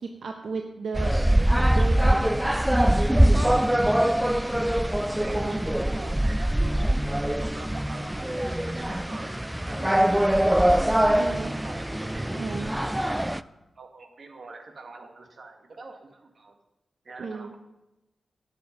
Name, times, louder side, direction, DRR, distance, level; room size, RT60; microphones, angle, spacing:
voice 1, 0.0-2.5 3.1-3.4 5.4-5.9 11.1-11.5 12.3-12.7 17.2-17.5, right 4 dB, 75° right, 4 dB, 0.9 m, -35 dB
sound 1, 0.9-13.4, right 1 dB, 5° right, 0.3 m, -23 dB
voice 2, 5.2-6.8 7.1-12.3 12.6-12.7 13.1-13.5 13.8-16.6 17.0-17.6, right 3 dB, 55° right, 5 dB, 1.7 m, -44 dB
12.5 x 8.7 x 5.2 m, 0.98 s
wide cardioid pair, 95°, 0 cm